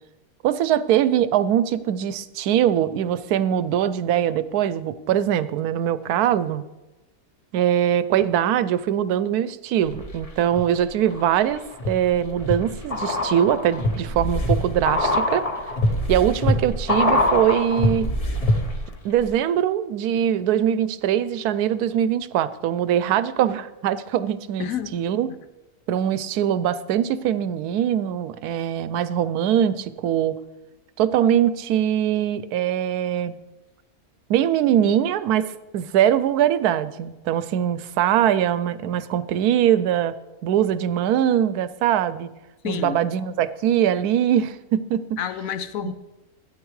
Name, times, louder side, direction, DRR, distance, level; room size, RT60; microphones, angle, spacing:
voice 1, 0.4-6.6 7.5-11.6 11.9-15.5 16.1-18.1 19.0-25.3 25.9-30.4 31.0-33.4 34.3-40.1 40.4-42.3 42.6-45.2 45.8-45.9, right 10 dB, 85° right, 14 dB, 1.1 m, -22 dB
sound 1, 9.9-10.6 11.1-18.9 19.2-19.3, left 1 dB, 30° left, 0.9 m, -24 dB
voice 2, 24.6-24.9 42.6-43.0 45.2-45.9, left 8 dB, 70° left, 11 dB, 1.0 m, -29 dB
12.5 x 9.0 x 3.2 m, 1.0 s
omnidirectional pair, 1.6 m